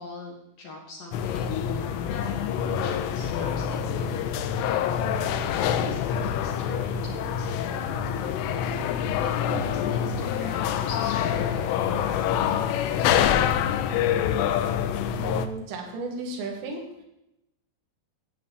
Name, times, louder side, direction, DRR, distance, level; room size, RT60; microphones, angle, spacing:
voice 1, 0.0-13.3, left 3 dB, 65° left, 0 dB, 2.3 m, -42 dB
sound 1, 1.1-15.5, left 9 dB, 85° left, 3.1 m, -26 dB
voice 2, 15.1-16.8, right 3 dB, 75° right, 0 dB, 4.6 m, -34 dB
12.5 x 5.9 x 8.9 m, 0.89 s
omnidirectional pair, 6.0 m